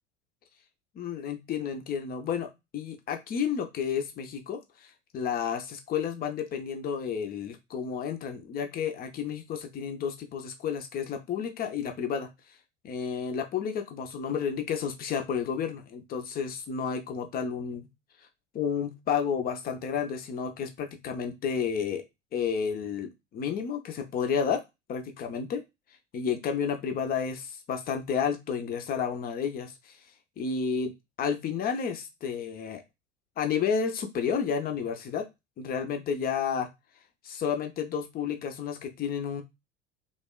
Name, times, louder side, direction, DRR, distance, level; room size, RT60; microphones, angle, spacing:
voice 1, 0.9-4.9 5.1-12.3 12.8-17.9 18.5-22.0 22.3-24.6 24.9-25.6 26.1-30.0 30.4-32.8 33.4-35.3 35.6-36.7 37.2-39.4, left 7 dB, 25° left, 6 dB, 0.5 m, -31 dB
2.9 x 2.1 x 2.3 m, 0.22 s
figure-of-eight pair, 70°, 36 cm